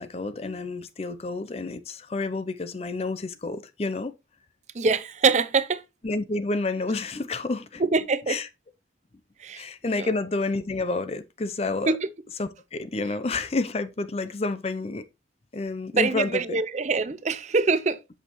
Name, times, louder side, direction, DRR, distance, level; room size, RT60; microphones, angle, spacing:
voice 1, 0.0-4.1 6.0-7.8 8.3-8.5 9.5-12.0 12.4-15.0 15.5-16.6, left 3 dB, 35° left, 0.5 m, -29 dB
voice 2, 4.7-5.8 7.8-8.4 9.4-9.6 10.0-10.1 11.9-12.1 15.9-18.0, right 4 dB, 40° right, 0.6 m, -24 dB
7.8 x 6.4 x 3.0 m
head